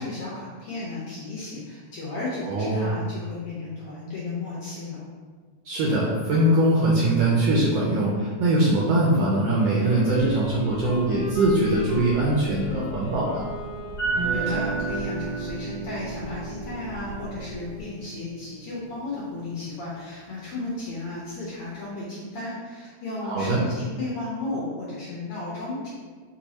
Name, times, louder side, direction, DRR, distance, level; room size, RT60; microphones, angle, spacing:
voice 1, 0.0-5.0 14.3-25.9, left 2 dB, 70° left, -6 dB, 1.4 m, -34 dB
voice 2, 2.5-3.0 5.6-13.5 23.2-23.6, right 1 dB, 75° right, -5 dB, 1.5 m, -22 dB
Wind instrument woodwind instrument, 9.5-14.5, equal, 90° left, 1.3 m, -36 dB
sound 1, 10.0-17.8, right 3 dB, 40° left, 1.1 m, -35 dB
Guitar, 14.1-20.2, right 5 dB, 60° right, 1.2 m, -35 dB
4.8 x 2.6 x 4.0 m, 1.5 s
omnidirectional pair, 3.4 m